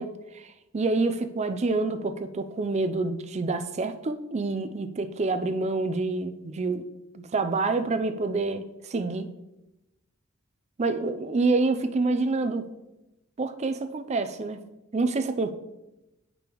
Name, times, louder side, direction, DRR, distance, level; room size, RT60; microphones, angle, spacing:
voice 1, 0.0-6.9 7.1-9.3 10.8-12.7 13.4-14.6 14.9-15.5, right 3 dB, 35° right, 9 dB, 0.4 m, -27 dB
8.6 x 5.3 x 3.0 m, 0.96 s
head